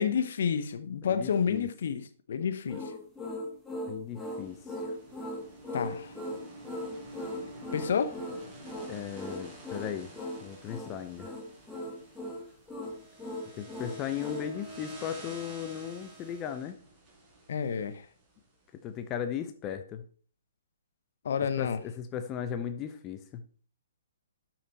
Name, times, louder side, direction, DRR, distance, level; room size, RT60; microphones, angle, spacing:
voice 1, 0.0-2.9 5.7-6.1 7.7-8.2 17.5-17.9 21.2-21.8, left 7 dB, 50° left, 1.0 m, -29 dB
voice 2, 1.1-1.7 3.9-4.8 8.9-10.1 10.4-11.3 13.5-16.8 18.7-20.0 21.6-23.4, left 9 dB, 25° left, 0.9 m, -37 dB
sound 1, 2.7-14.5, left 1 dB, 5° left, 1.9 m, -39 dB
sound 2, 4.2-18.4, right 2 dB, 10° right, 4.6 m, -49 dB
12.0 x 6.0 x 4.2 m
figure-of-eight pair, 125°, 0 cm